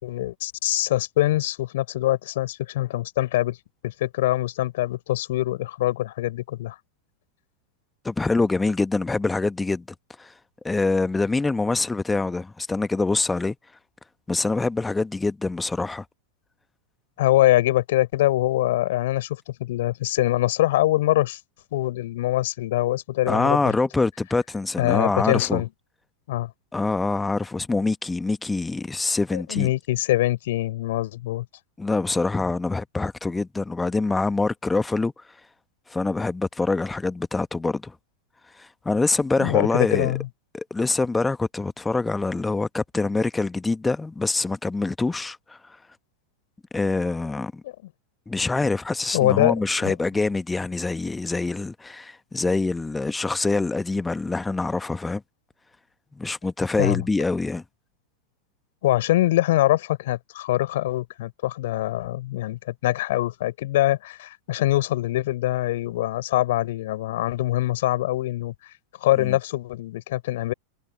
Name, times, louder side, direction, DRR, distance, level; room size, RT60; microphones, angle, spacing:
voice 1, 0.0-3.6 3.8-6.8 17.2-21.4 21.7-23.7 24.8-25.7 26.3-26.5 29.3-31.4 39.4-40.3 47.6-47.7 49.1-49.5 49.8-49.9 56.8-57.0 58.8-68.5 69.0-70.5, left 15 dB, 55° left, 4.6 m, -23 dB
voice 2, 8.0-9.8 10.2-10.3 10.6-13.5 14.3-16.0 23.2-25.6 26.7-29.7 31.8-35.1 35.9-38.0 38.5-40.1 40.5-45.8 46.7-47.6 48.3-55.2 56.1-57.6 69.2-69.4, left 3 dB, 10° left, 1.5 m, -25 dB
figure-of-eight pair, 90°, 0 cm